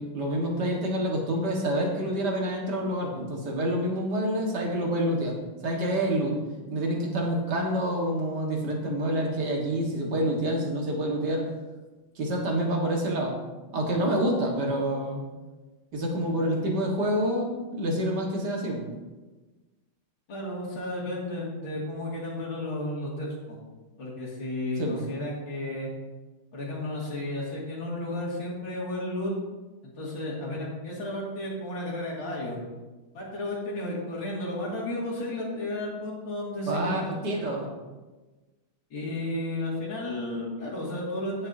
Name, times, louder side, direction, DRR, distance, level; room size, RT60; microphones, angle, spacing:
voice 1, 0.0-5.4 5.6-6.4 6.7-11.5 12.2-13.4 13.7-15.2 15.9-18.8 24.8-25.0 36.7-37.7, right 1 dB, 55° right, 0 dB, 2.2 m, -27 dB
voice 2, 20.3-23.6 24.0-25.9 26.5-29.3 29.8-32.6 33.1-37.2 37.5-37.6 38.9-41.5, left 1 dB, 70° left, -6 dB, 3.2 m, -33 dB
17.5 x 6.6 x 2.8 m, 1.2 s
omnidirectional pair, 2.3 m